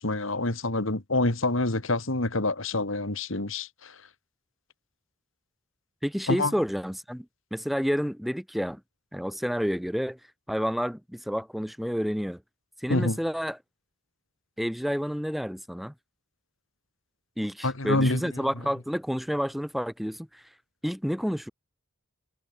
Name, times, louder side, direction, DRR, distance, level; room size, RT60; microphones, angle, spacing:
voice 1, 0.0-3.9 6.3-6.5 12.9-13.2 17.6-18.2, left 2 dB, 70° left, 2.4 m, -26 dB
voice 2, 6.0-7.3 7.5-8.8 9.1-10.2 10.5-12.4 12.8-13.6 14.6-15.9 17.4-20.4 20.8-21.5, equal, ahead, 2.0 m, -29 dB
head